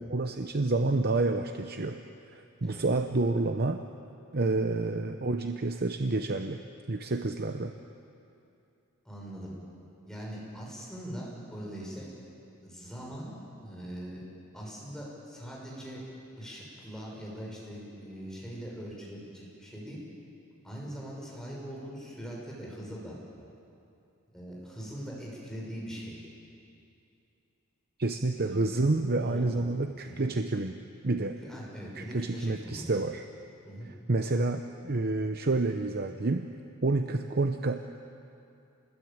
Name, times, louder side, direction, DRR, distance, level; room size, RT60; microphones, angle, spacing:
voice 1, 0.0-2.0 2.3-3.8 4.3-6.6 6.9-7.7 28.0-31.4 32.0-33.2 34.1-36.5 36.8-37.8, right 2 dB, 45° right, 7 dB, 0.8 m, -29 dB
voice 2, 9.0-9.5 10.1-12.1 12.6-14.2 14.5-16.0 16.4-20.0 20.6-23.2 24.3-26.2 28.3-28.6 29.2-29.6 30.1-30.3 31.4-32.9 33.6-33.9, equal, 5° left, -4 dB, 6.0 m, -41 dB
28.0 x 20.5 x 8.9 m, 2.7 s
head